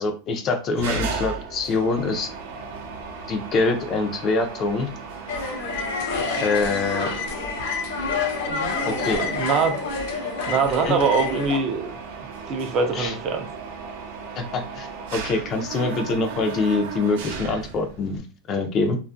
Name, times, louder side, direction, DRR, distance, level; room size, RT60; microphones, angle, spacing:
voice 1, 0.0-2.3 3.3-4.9 6.4-7.1 8.9-9.2 10.8-11.0 12.9-13.1 14.4-19.0, left 3 dB, 30° left, 0.4 m, -24 dB
Mechanisms, 0.8-18.2, right 4 dB, 75° right, 0.7 m, -36 dB
sound 1, 5.3-11.6, left 4 dB, 70° left, 0.7 m, -28 dB
voice 2, 8.5-9.9 10.5-11.9 12.5-13.5, right 5 dB, 35° right, 0.4 m, -24 dB
2.5 x 2.3 x 2.5 m
supercardioid pair, 160°, 0 cm